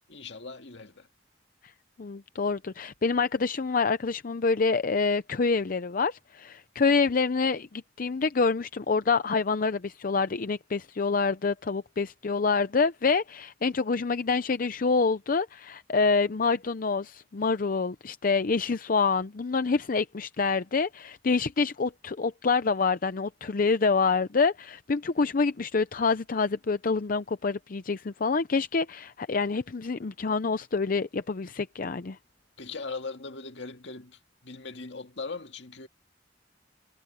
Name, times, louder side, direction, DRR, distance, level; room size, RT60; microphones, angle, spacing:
voice 1, 0.1-1.1 32.6-35.9, left 4 dB, 70° left, 2.0 m, -39 dB
voice 2, 2.0-32.2, left 4 dB, 50° left, 0.6 m, -27 dB
head